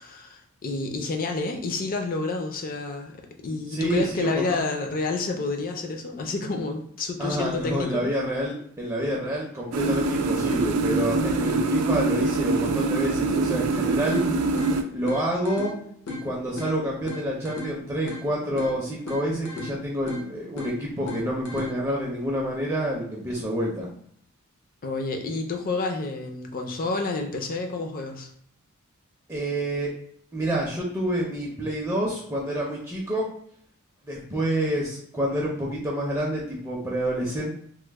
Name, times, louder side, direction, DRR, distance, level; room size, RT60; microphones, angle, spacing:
voice 1, 0.0-3.2 3.4-8.0 24.8-28.3, left 3 dB, 40° left, 3 dB, 0.5 m, -29 dB
voice 2, 3.7-4.6 7.2-14.2 14.9-15.7 16.1-23.9 29.3-29.9 30.3-33.3 34.1-37.5, right 1 dB, 15° right, -3 dB, 0.5 m, -28 dB
sound 1, 9.7-14.8, right 3 dB, 80° right, 0.4 m, -24 dB
sound 2, 14.1-22.1, left 1 dB, 85° left, 0.8 m, -38 dB
3.0 x 2.0 x 3.4 m, 0.65 s
head